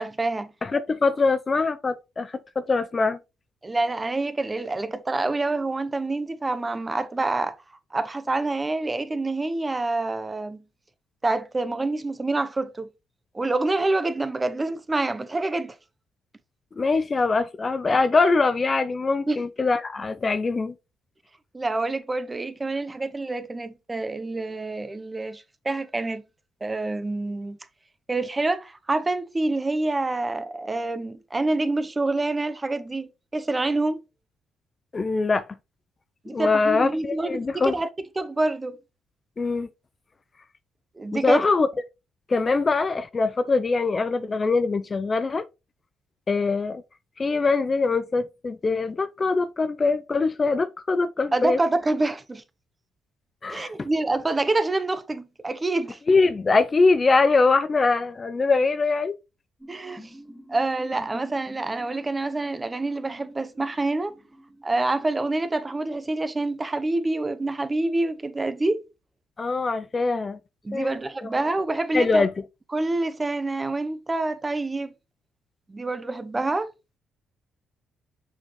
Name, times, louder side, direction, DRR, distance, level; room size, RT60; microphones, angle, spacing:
voice 1, 0.0-0.5 3.6-7.6 7.9-10.6 11.2-12.9 13.3-15.8 19.3-19.4 21.5-26.2 26.6-27.6 28.1-34.0 36.2-37.9 38.2-38.8 41.0-41.4 51.3-52.4 53.5-56.0 59.7-60.1 60.5-64.1 64.6-68.8 70.6-72.2 72.7-74.9 75.7-76.7, right 2 dB, 20° right, 0.8 m, -27 dB
voice 2, 0.6-3.2 16.8-20.7 34.9-35.4 36.3-37.7 39.4-39.7 41.1-41.7 42.3-45.4 46.3-46.8 47.2-51.6 53.4-53.9 56.1-59.1 69.4-70.4 70.7-71.3 71.9-72.3, left 3 dB, 30° left, 0.5 m, -23 dB
sound 1, 59.6-65.2, equal, 5° left, 2.1 m, -47 dB
6.3 x 5.6 x 3.1 m
cardioid pair, 90°, 0 cm